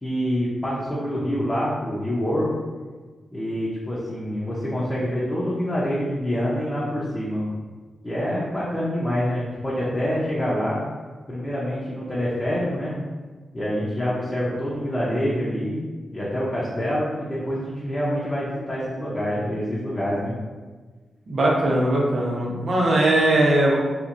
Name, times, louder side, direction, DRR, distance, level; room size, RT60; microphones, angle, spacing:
voice 1, 0.0-2.5 3.3-7.5 8.0-10.8 11.3-12.9 13.5-15.8 16.1-20.3, equal, 20° left, -8 dB, 0.6 m, -26 dB
voice 2, 21.3-23.8, right 1 dB, 55° right, -3 dB, 0.7 m, -20 dB
2.9 x 2.5 x 2.5 m, 1.4 s
cardioid pair, 85°, 0 cm